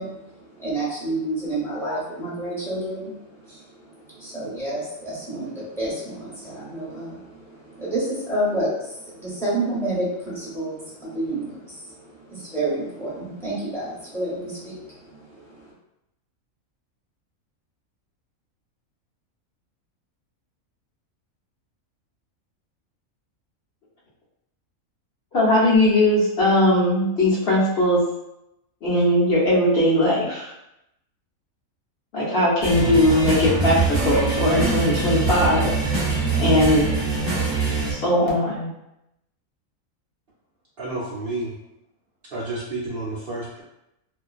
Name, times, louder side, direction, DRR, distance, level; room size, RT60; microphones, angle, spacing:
voice 1, 0.0-15.7, right 1 dB, ahead, -9 dB, 0.7 m, -30 dB
voice 2, 25.3-28.0 28.8-30.5 32.1-35.7 36.4-36.9 37.9-38.7, left 1 dB, 55° left, -7 dB, 0.8 m, -19 dB
sound 1, 32.6-37.9, right 4 dB, 35° right, 1.1 m, -23 dB
voice 3, 40.8-41.5 42.3-43.6, right 2 dB, 65° right, -6 dB, 0.5 m, -30 dB
2.4 x 2.2 x 2.3 m, 0.86 s
omnidirectional pair, 1.5 m